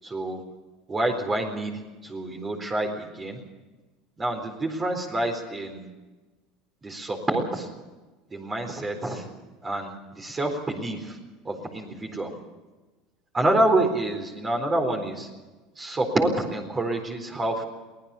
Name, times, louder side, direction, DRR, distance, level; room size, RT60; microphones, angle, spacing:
voice 1, 0.0-0.4 0.9-3.4 4.2-5.9 6.8-7.7 8.3-9.3 9.6-11.2 11.4-12.3 13.3-15.3 15.8-17.6, right 1 dB, 20° right, 2 dB, 4.1 m, -27 dB
24.0 x 18.0 x 7.0 m, 1.2 s
supercardioid pair, 115°, 0 cm